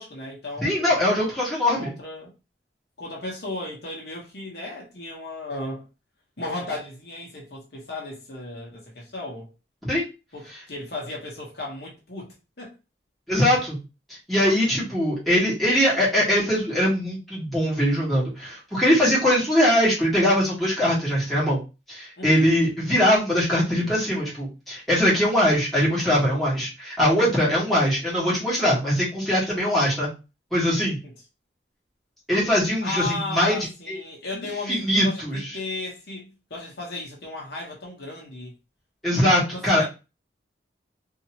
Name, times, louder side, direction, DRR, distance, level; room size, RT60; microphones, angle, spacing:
voice 1, 0.0-1.0 1.7-2.3 3.0-5.9 6.4-9.5 10.3-12.7 22.2-22.6 31.0-31.1 32.8-38.5 39.5-39.9, left 2 dB, 65° left, 1.0 m, -35 dB
voice 2, 0.6-1.9 9.8-10.1 13.3-13.8 14.3-21.6 21.9-30.1 30.5-31.0 32.3-34.0 34.7-35.4 39.0-39.9, equal, ahead, 1.4 m, -22 dB
2.8 x 2.7 x 2.9 m
head